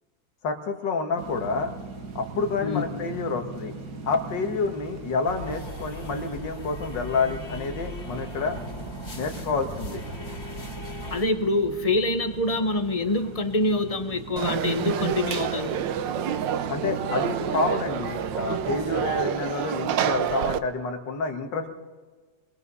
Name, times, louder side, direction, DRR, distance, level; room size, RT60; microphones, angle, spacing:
voice 1, 0.4-1.7 2.2-3.7 4.1-8.6 9.2-10.0 16.7-21.7, left 4 dB, 70° left, 5 dB, 2.3 m, -28 dB
sound 1, 1.2-19.3, right 4 dB, 60° right, 2.0 m, -40 dB
sound 2, 5.3-11.3, equal, 50° left, 3.3 m, -38 dB
voice 2, 11.1-15.8, left 2 dB, 30° left, 8 dB, 0.7 m, -25 dB
Conversation / Crowd, 14.4-20.6, right 9 dB, 75° right, 1.4 m, -28 dB
23.0 x 21.5 x 5.6 m, 1.4 s
omnidirectional pair, 2.0 m